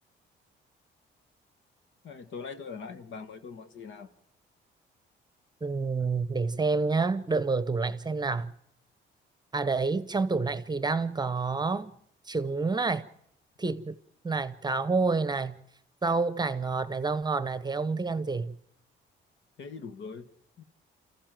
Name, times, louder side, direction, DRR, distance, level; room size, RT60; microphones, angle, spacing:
voice 1, 2.0-4.1 19.6-20.3 20.6-20.7, left 5 dB, 70° left, 1.5 m, -42 dB
voice 2, 5.6-8.5 9.5-11.9 12.3-13.1 13.6-13.9 14.2-15.6 16.0-18.5, right 4 dB, 20° right, 0.9 m, -28 dB
29.0 x 14.5 x 7.6 m
cardioid pair, 90°, 20 cm